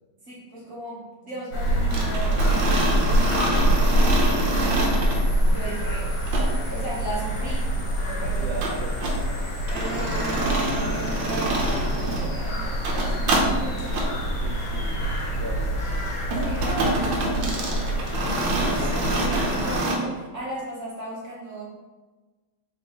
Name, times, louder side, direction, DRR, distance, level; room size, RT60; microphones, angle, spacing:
voice 1, 0.2-3.5 5.5-6.1 6.6-8.6 9.7-13.9 16.3-17.8 18.5-21.6, right 1 dB, 50° right, -7 dB, 1.1 m, -36 dB
sound 1, 1.5-19.8, right 1 dB, 70° left, 1.8 m, -25 dB
sound 2, 1.9-5.2 6.3-6.5 8.6-9.2 9.7-12.3 12.7-13.5 13.9-14.1 16.3-20.0, right 1 dB, 70° right, 1.4 m, -26 dB
sound 3, 3.5-15.2, left 1 dB, 35° left, 0.6 m, -43 dB
voice 2, 4.5-4.9 8.4-9.0 14.2-15.0 15.3-15.9, right 2 dB, 85° right, -2 dB, 0.7 m, -37 dB
4.5 x 3.9 x 2.9 m, 1.3 s
omnidirectional pair, 2.2 m